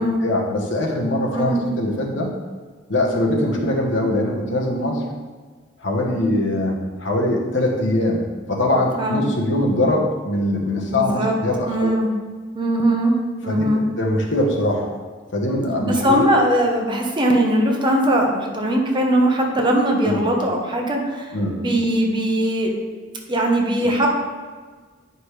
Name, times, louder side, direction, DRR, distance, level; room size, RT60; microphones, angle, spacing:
voice 1, 0.2-2.3 2.9-5.0 5.8-8.2 8.5-11.9 13.4-13.7 14.0-14.9 15.3-16.2 20.0-20.2 21.3-21.6 23.8-23.9, left 1 dB, 80° left, 0 dB, 1.2 m, -22 dB
voice 2, 1.3-1.7 9.0-9.2 10.9-11.4 11.6-12.1 12.5-13.1 13.4-13.8 15.8-22.7 23.3-24.1, right 1 dB, 25° right, 0 dB, 1.0 m, -20 dB
9.1 x 5.3 x 3.3 m, 1.4 s
head